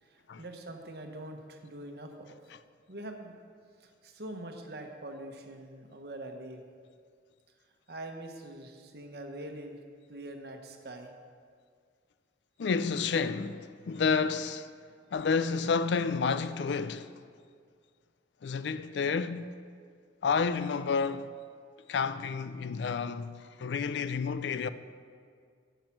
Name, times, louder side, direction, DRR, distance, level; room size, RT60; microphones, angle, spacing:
voice 1, 0.0-2.4 2.9-3.4 3.8-6.6 7.9-9.8 10.1-11.1, right 1 dB, 60° right, 1.1 m, -44 dB
voice 2, 12.6-14.7 15.1-17.2 18.4-19.5 20.2-21.3 21.9-24.7, left 5 dB, 75° left, 0.4 m, -30 dB
10.5 x 8.2 x 5.9 m
head